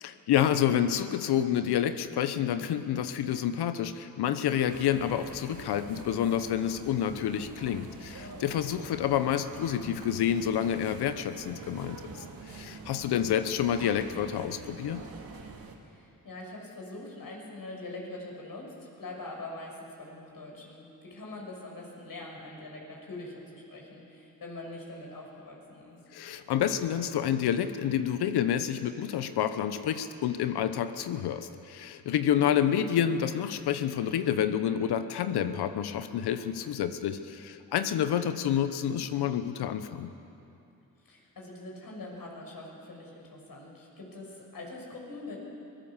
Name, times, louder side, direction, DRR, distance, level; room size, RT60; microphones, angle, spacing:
voice 1, 0.0-12.1 12.5-15.0 26.1-40.1, left 9 dB, 85° left, 10 dB, 1.0 m, -28 dB
sound 1, 4.7-15.8, right 4 dB, 65° right, 2.6 m, -46 dB
voice 2, 8.2-9.0 15.8-26.0 41.0-45.4, left 2 dB, 65° left, -1 dB, 6.1 m, -43 dB
23.5 x 16.5 x 7.3 m, 2.7 s
supercardioid pair, 55°, 38 cm